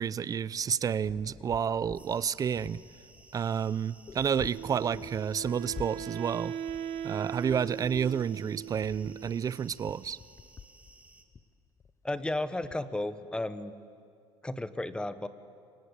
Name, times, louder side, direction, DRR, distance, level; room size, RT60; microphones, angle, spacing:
voice 1, 0.0-2.8 3.3-6.5 7.0-10.2, right 7 dB, 30° right, 0.6 m, -30 dB
sound 1, 1.0-12.7, left 5 dB, 25° left, 1.0 m, -49 dB
sound 2, 1.9-11.2, right 2 dB, 10° right, 2.4 m, -58 dB
Wind instrument woodwind instrument, 4.5-9.5, right 9 dB, 65° right, 1.4 m, -39 dB
voice 2, 12.0-13.7 14.4-15.3, left 1 dB, 10° left, 1.3 m, -33 dB
29.0 x 25.0 x 8.2 m
cardioid pair, 115°, 11 cm